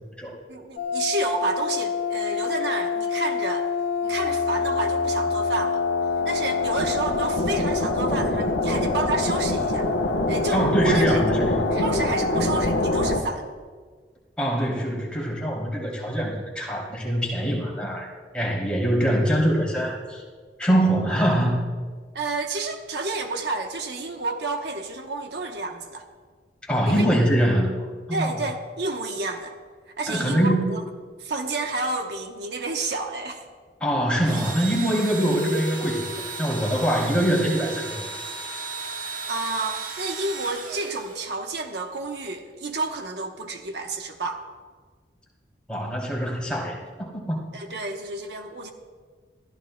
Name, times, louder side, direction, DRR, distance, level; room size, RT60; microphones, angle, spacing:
voice 1, 0.5-3.7 4.0-5.8 6.2-9.9 10.3-13.5 22.1-26.0 26.9-27.1 28.1-29.6 30.0-30.8 31.2-33.4 39.3-44.4 47.5-48.7, right 3 dB, 65° right, 4 dB, 1.0 m, -30 dB
sound 1, 0.8-13.2, left 3 dB, 85° left, 1.2 m, -25 dB
voice 2, 10.5-11.6 14.4-18.1 18.3-20.2 20.6-21.6 26.7-27.7 28.1-28.3 30.1-30.7 33.8-36.1 36.3-38.1 45.7-47.4, equal, 5° left, -4 dB, 2.8 m, -23 dB
Engine / Drill, 34.2-41.5, right 4 dB, 45° right, 1.3 m, -35 dB
22.5 x 14.0 x 2.2 m, 1.5 s
head